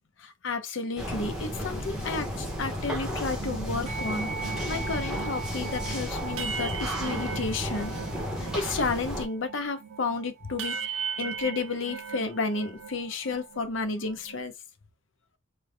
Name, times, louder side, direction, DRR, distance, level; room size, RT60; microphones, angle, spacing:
voice 1, 0.2-7.9 8.4-14.5, left 3 dB, 65° left, 0.6 m, -32 dB
sound 1, 1.0-9.2, equal, 5° right, 0.8 m, -33 dB
sound 2, 3.4-8.8 9.1-13.0 13.2-14.4, right 6 dB, 75° right, 0.4 m, -39 dB
sound 3, 3.9-13.5, right 5 dB, 35° right, 0.6 m, -42 dB
3.3 x 2.1 x 3.3 m
head